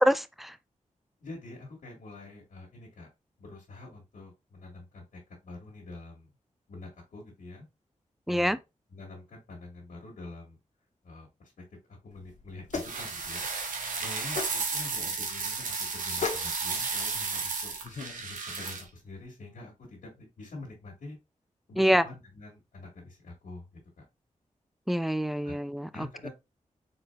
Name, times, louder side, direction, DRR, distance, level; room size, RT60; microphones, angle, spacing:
voice 1, 0.0-0.6 8.3-8.6 21.8-22.0 24.9-26.1, equal, ahead, 0.3 m, -25 dB
voice 2, 1.2-3.1 3.4-6.3 6.7-7.7 8.3-8.6 8.9-10.6 11.0-11.3 11.9-13.5 14.0-17.7 18.2-21.2 21.7-23.8 25.4-25.6 25.9-26.3, left 2 dB, 85° left, 1.6 m, -46 dB
sound 1, 12.1-18.2, left 4 dB, 65° left, 0.9 m, -39 dB
sound 2, 12.7-18.8, right 4 dB, 90° right, 0.8 m, -33 dB
4.0 x 3.9 x 2.2 m
cardioid pair, 60°, 13 cm